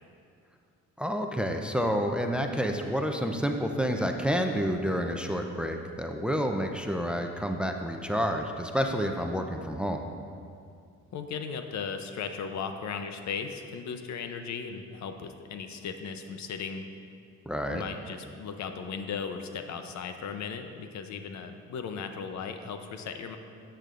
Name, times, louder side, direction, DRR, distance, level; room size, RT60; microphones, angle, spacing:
voice 1, 1.0-10.1 17.5-17.8, equal, 5° right, 4 dB, 0.5 m, -29 dB
voice 2, 11.1-16.8 17.7-23.4, left 6 dB, 65° left, 7 dB, 0.7 m, -37 dB
12.0 x 7.8 x 2.5 m, 2.3 s
cardioid pair, 90°, 30 cm